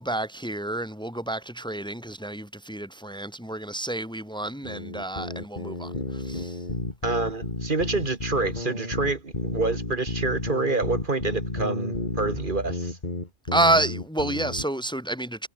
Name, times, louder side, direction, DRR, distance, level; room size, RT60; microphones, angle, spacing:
voice 1, 0.0-6.6 13.5-15.5, right 1 dB, 5° left, 1.8 m, -29 dB
sound 1, 4.6-14.6, left 2 dB, 50° left, 3.4 m, -32 dB
voice 2, 7.0-13.0, right 3 dB, 55° right, 2.1 m, -27 dB
omnidirectional pair, 1.0 m